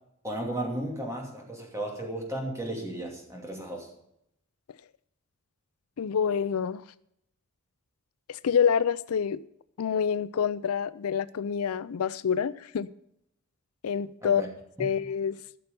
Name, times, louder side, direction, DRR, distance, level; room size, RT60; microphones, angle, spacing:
voice 1, 0.2-3.9 14.2-14.5 14.8-14.9, right 1 dB, 15° right, 2.6 m, -34 dB
voice 2, 6.0-6.8 8.3-9.4 9.8-12.9 13.8-14.4 14.8-15.4, left 7 dB, 80° left, 0.4 m, -27 dB
13.5 x 6.7 x 6.8 m
head